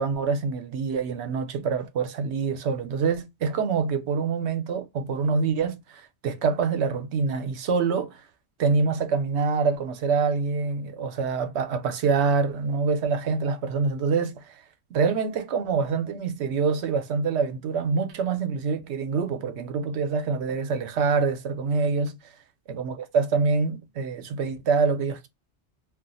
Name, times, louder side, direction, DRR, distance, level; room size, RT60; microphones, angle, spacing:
voice 1, 0.0-8.2 8.6-14.5 14.9-22.2 22.7-25.3, right 5 dB, 80° right, 0.9 m, -25 dB
2.4 x 2.3 x 3.8 m
omnidirectional pair, 1.1 m